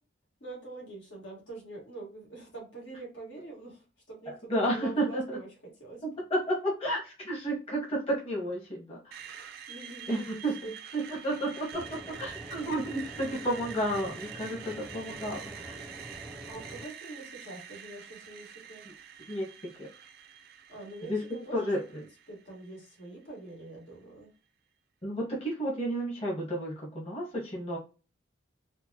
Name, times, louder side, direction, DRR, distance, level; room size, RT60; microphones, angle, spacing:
voice 1, 0.4-6.0 9.2-10.7 16.5-18.9 20.7-24.3, right 2 dB, 80° left, -2 dB, 1.7 m, -45 dB
voice 2, 4.3-5.4 6.0-9.2 10.1-15.8 19.3-19.5 19.8-19.9 21.1-21.2 21.5-21.8 25.0-27.8, right 1 dB, 35° left, -4 dB, 1.2 m, -32 dB
Screech, 9.1-23.1, right 8 dB, 55° right, 0.4 m, -46 dB
sound 1, 11.7-16.8, right 1 dB, ahead, 0.6 m, -46 dB
4.3 x 2.1 x 2.9 m, 0.33 s
head